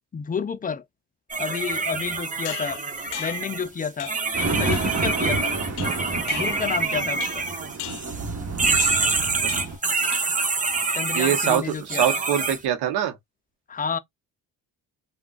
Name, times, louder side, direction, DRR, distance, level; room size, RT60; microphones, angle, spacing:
voice 1, 0.1-0.8 1.4-2.8 3.2-5.6 6.3-7.4 10.9-12.2 13.7-14.0, left 6 dB, 20° left, 0.4 m, -30 dB
sound 1, 1.3-8.3 8.6-12.6, right 4 dB, 20° right, 0.7 m, -26 dB
sound 2, 2.4-3.6 4.0-4.3 4.7-5.1 5.8-6.8 7.2-7.5 7.8-8.2 8.8-9.1 9.5-9.8 10.1-10.5, left 12 dB, 75° left, 0.5 m, -37 dB
sound 3, 4.3-9.8, right 3 dB, 40° right, 1.1 m, -30 dB
voice 2, 11.1-13.2, right 10 dB, 70° right, 0.8 m, -24 dB
3.5 x 2.3 x 2.3 m
supercardioid pair, 65°, 40 cm